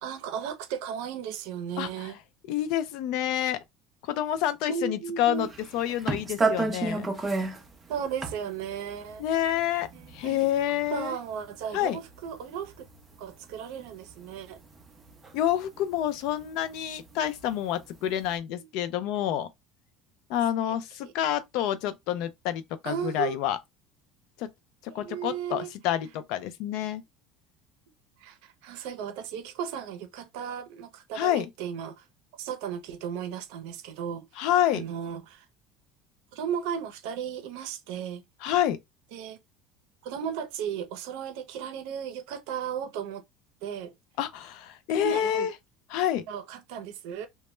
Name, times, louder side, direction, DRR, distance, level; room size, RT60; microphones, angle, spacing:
voice 1, 0.0-2.2 4.7-5.5 7.9-9.2 9.9-10.4 10.9-12.9 13.2-14.6 18.6-18.7 20.7-20.8 21.0-21.1 22.8-23.4 24.9-25.7 28.2-32.0 32.4-34.3 34.7-35.4 36.3-38.2 39.1-39.4 40.0-43.2 43.6-43.9 45.0-45.5 46.3-47.3, right 8 dB, 75° right, 0.5 m, -35 dB
voice 2, 1.8-2.1 2.5-3.6 4.0-7.1 9.2-9.9 10.1-11.1 11.7-12.0 15.3-19.5 20.3-23.6 24.4-24.5 24.9-27.0 31.1-31.5 34.4-34.8 38.4-38.8 44.2-45.5 45.9-46.2, left 11 dB, 65° left, 0.4 m, -28 dB
sound 1, 5.4-13.5 13.8-17.5 17.9-18.3, right 3 dB, 15° right, 0.5 m, -32 dB
2.1 x 2.1 x 3.0 m
cardioid pair, 155°, 0 cm